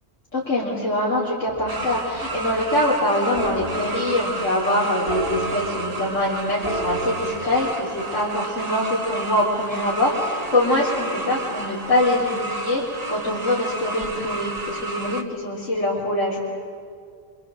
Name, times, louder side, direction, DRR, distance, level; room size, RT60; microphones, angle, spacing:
voice 1, 0.3-16.4, left 1 dB, 80° left, -8 dB, 3.8 m, -23 dB
sound 1, 1.4-2.7 3.3-4.5 4.8-6.2 6.5-8.9 10.0-11.8, right 1 dB, 15° right, 7.7 m, -34 dB
sound 2, 1.7-15.2, right 2 dB, 30° right, 1.2 m, -32 dB
26.5 x 24.0 x 7.6 m, 2.3 s
omnidirectional pair, 1.3 m